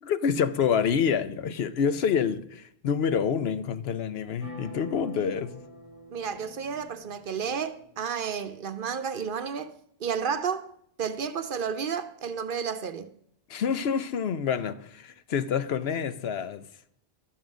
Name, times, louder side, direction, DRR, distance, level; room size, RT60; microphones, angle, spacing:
voice 1, 0.0-5.6 13.5-16.7, left 7 dB, 80° left, 1.0 m, -27 dB
sound 1, 4.4-8.2, left 1 dB, 35° left, 1.7 m, -46 dB
voice 2, 6.1-9.7 10.0-10.7 11.0-13.1, right 6 dB, 60° right, 0.9 m, -31 dB
12.0 x 7.5 x 6.1 m
omnidirectional pair, 1.0 m